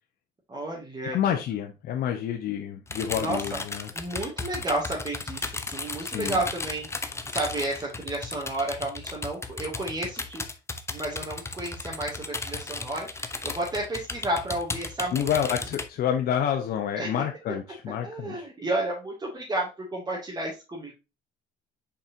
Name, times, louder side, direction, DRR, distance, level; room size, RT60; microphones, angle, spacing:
voice 1, 0.5-1.2 3.2-3.6 3.9-10.4 10.9-15.3 17.0-17.1 18.0-20.9, right 1 dB, 25° right, -5 dB, 2.5 m, -32 dB
voice 2, 1.1-3.9 5.9-6.3 15.1-18.4, left 9 dB, 65° left, 3 dB, 1.1 m, -28 dB
sound 1, 2.9-15.9, left 3 dB, 15° left, 0.9 m, -35 dB
7.2 x 5.3 x 2.8 m, 0.27 s
cardioid pair, 110°, 17 cm